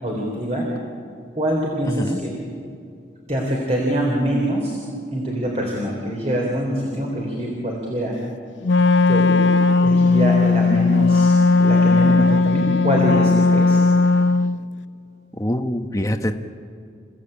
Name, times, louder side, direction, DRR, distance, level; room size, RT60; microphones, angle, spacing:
voice 1, 0.0-0.7 1.4-2.3 3.3-4.8 5.1-8.2 9.1-9.5 9.8-13.8, right 1 dB, 35° right, -1 dB, 3.6 m, -24 dB
voice 2, 1.9-2.2 15.4-16.3, equal, 15° left, 6 dB, 1.1 m, -24 dB
Wind instrument woodwind instrument, 8.6-14.6, left 3 dB, 80° left, 0.6 m, -16 dB
29.5 x 16.0 x 8.8 m, 2.3 s
head